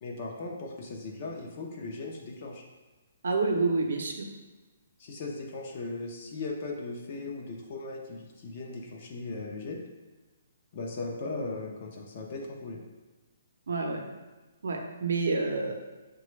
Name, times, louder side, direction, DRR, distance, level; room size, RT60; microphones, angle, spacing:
voice 1, 0.0-2.6 5.0-9.9 10.7-12.8, left 3 dB, 30° left, 0 dB, 0.5 m, -38 dB
voice 2, 3.2-4.1 13.7-14.0 14.6-15.7, right 3 dB, 70° right, 2 dB, 0.6 m, -28 dB
5.7 x 2.2 x 3.1 m, 1.2 s
hypercardioid pair, 175°, 0 cm